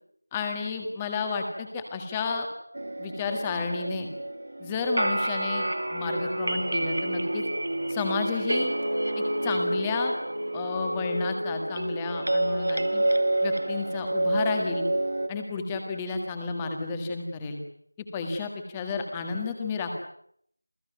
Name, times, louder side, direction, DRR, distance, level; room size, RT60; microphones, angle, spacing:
voice 1, 0.3-2.5 3.0-4.1 4.6-7.4 7.9-8.7 9.2-10.1 10.5-13.0 13.4-14.8 15.3-17.6 18.0-19.9, left 4 dB, 5° left, 4 dB, 1.7 m, -31 dB
sound 1, 2.8-15.3, right 1 dB, 45° right, 2.0 m, -28 dB
28.5 x 17.5 x 9.4 m, 0.68 s
figure-of-eight pair, 175°, 0 cm